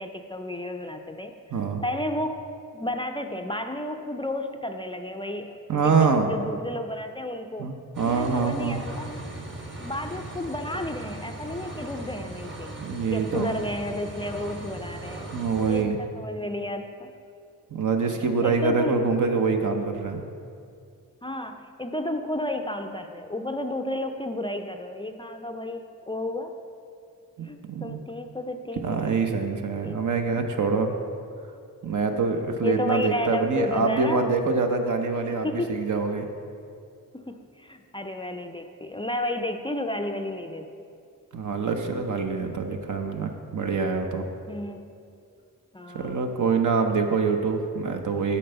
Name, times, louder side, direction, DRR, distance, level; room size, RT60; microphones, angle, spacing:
voice 1, 0.0-2.5 2.7-7.7 8.0-9.1 9.8-12.8 13.1-17.1 18.4-19.0 21.2-26.5 27.4-29.0 29.8-30.0 30.3-30.4 32.1-32.2 32.6-34.3 35.4-35.7 37.1-40.7 44.5-44.8 45.7-46.4, left 1 dB, 15° left, 5 dB, 0.4 m, -32 dB
voice 2, 1.5-1.8 5.7-6.3 7.6-8.8 12.8-13.5 15.3-16.0 17.7-20.2 27.4-28.0 28.8-30.9 31.8-36.3 41.3-44.2 45.9-48.4, right 4 dB, 60° right, 4 dB, 0.9 m, -25 dB
sound 1, 7.9-15.8, right 2 dB, 35° right, 1.2 m, -38 dB
8.5 x 4.4 x 6.8 m, 2.4 s
cardioid pair, 70°, 33 cm